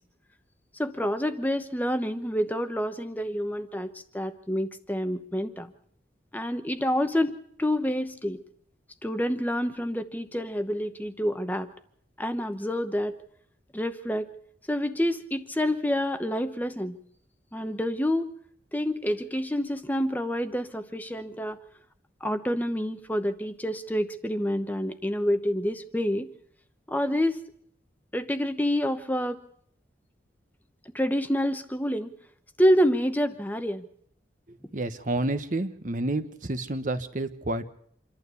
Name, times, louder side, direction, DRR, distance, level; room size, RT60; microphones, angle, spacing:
voice 1, 0.7-5.7 6.3-8.4 9.0-11.7 12.2-13.2 13.7-14.3 14.7-17.0 17.5-18.3 18.7-21.6 22.2-26.3 26.9-27.4 28.1-29.4 30.9-32.1 32.6-33.9, equal, 10° left, 9 dB, 0.9 m, -28 dB
voice 2, 34.7-37.7, right 2 dB, 45° right, 10 dB, 1.1 m, -29 dB
27.0 x 12.0 x 8.3 m, 0.65 s
head